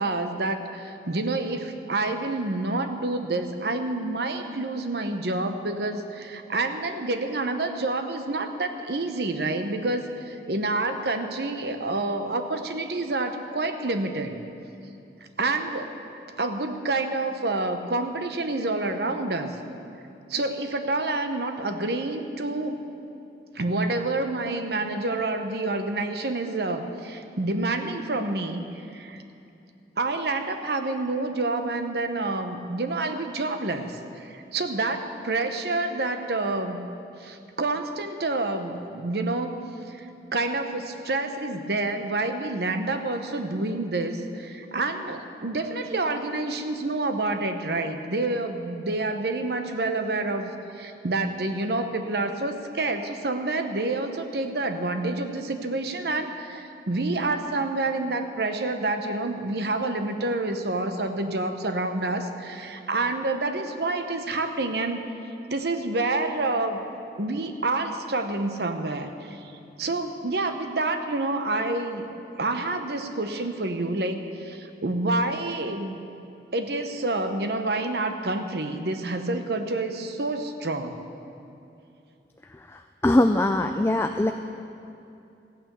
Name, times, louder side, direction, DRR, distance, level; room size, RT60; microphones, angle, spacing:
voice 1, 0.0-14.4 15.4-15.9 16.4-19.6 20.3-22.8 23.5-28.6 28.9-29.2 30.0-36.8 37.2-65.0 65.5-66.8 67.2-69.4 69.8-72.1 72.4-76.0 76.5-81.0, right 2 dB, 70° right, 7 dB, 0.9 m, -28 dB
voice 2, 82.5-84.3, left 1 dB, 15° left, 6 dB, 0.3 m, -22 dB
15.0 x 9.1 x 6.8 m, 2.7 s
head